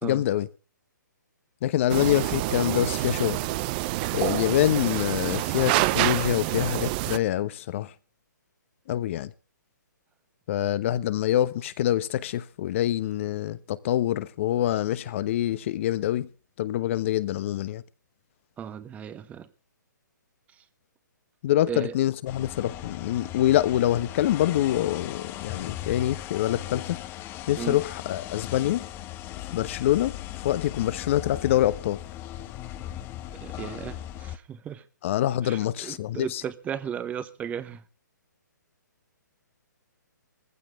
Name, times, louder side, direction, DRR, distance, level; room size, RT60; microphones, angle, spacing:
voice 1, 0.0-0.5 1.6-3.4 4.1-7.9 8.9-9.3 10.5-16.3 16.6-17.8 21.4-27.0 27.5-28.9 29.5-30.2 30.4-32.0 35.0-36.4, left 12 dB, 40° left, 1.1 m, -25 dB
sound 1, 1.9-7.2, right 18 dB, 30° right, 0.7 m, -27 dB
voice 2, 18.6-19.5 20.6-20.7 21.7-22.0 27.6-27.8 33.3-34.8 35.4-37.8, right 8 dB, 15° right, 1.2 m, -35 dB
sound 2, 22.3-34.4, left 13 dB, 20° left, 1.0 m, -38 dB
20.0 x 15.5 x 3.7 m
hypercardioid pair, 140°, 10 cm